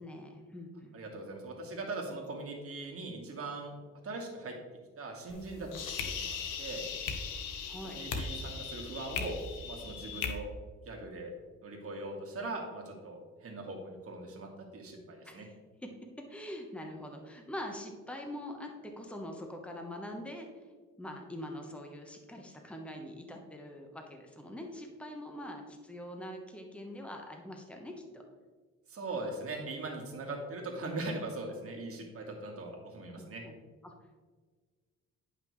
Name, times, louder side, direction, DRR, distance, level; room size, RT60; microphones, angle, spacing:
voice 1, 0.0-0.9 7.7-8.0 15.2-15.5 16.3-20.5 21.0-28.2 33.2-33.5 33.8-33.9, left 1 dB, 5° left, 2 dB, 1.1 m, -44 dB
voice 2, 0.9-3.8 4.0-4.5 5.0-5.7 6.2-6.8 7.8-9.4 9.6-10.5 10.9-11.3 11.6-15.5 28.9-33.4, right 2 dB, 50° right, 1 dB, 1.9 m, -40 dB
sound 1, 5.3-10.3, left 5 dB, 85° left, 1.0 m, -38 dB
9.9 x 5.8 x 3.1 m, 1.4 s
cardioid pair, 90°, 30 cm